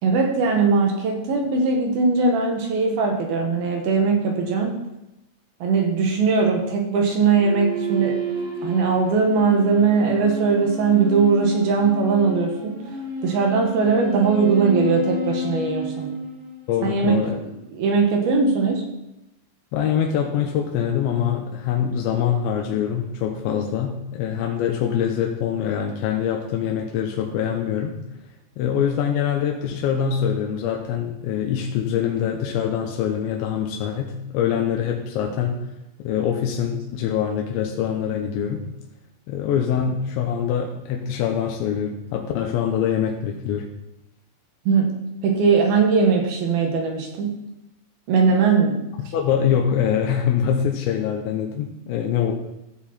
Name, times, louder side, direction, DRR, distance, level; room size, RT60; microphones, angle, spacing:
voice 1, 0.0-4.8 5.6-8.2 8.6-12.8 13.2-16.1 16.8-17.2 17.7-18.8 44.7-45.0 45.2-47.4 48.1-48.8, right 4 dB, 65° right, 1 dB, 3.0 m, -20 dB
sound 1, 7.3-16.9, right 1 dB, 90° right, 6.2 m, -31 dB
voice 2, 16.7-17.4 19.7-28.0 28.6-35.6 36.0-38.7 39.3-43.7 49.1-52.3, left 8 dB, 90° left, 1 dB, 3.2 m, -24 dB
15.0 x 7.1 x 4.3 m, 0.89 s
omnidirectional pair, 5.1 m